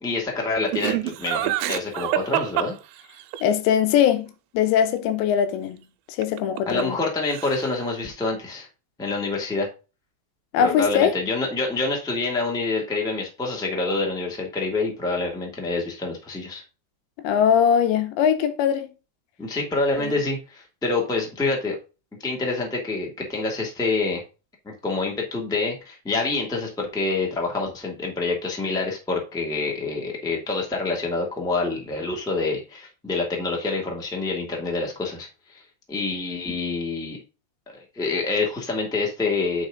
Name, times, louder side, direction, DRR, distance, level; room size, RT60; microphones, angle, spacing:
voice 1, 0.0-2.7 6.6-8.7 9.0-9.7 10.6-16.6 19.4-21.7 22.2-24.2 24.6-35.6 35.9-37.2 37.6-39.6, left 3 dB, ahead, 1.3 m, -27 dB
Laughter, 0.7-3.4 6.2-7.0 7.3-7.8, right 13 dB, 85° right, 2.8 m, -27 dB
voice 2, 3.4-5.8 6.2-7.0 10.5-11.1 17.2-18.9 20.0-20.1, left 8 dB, 85° left, 3.2 m, -21 dB
9.5 x 5.3 x 3.9 m
omnidirectional pair, 5.1 m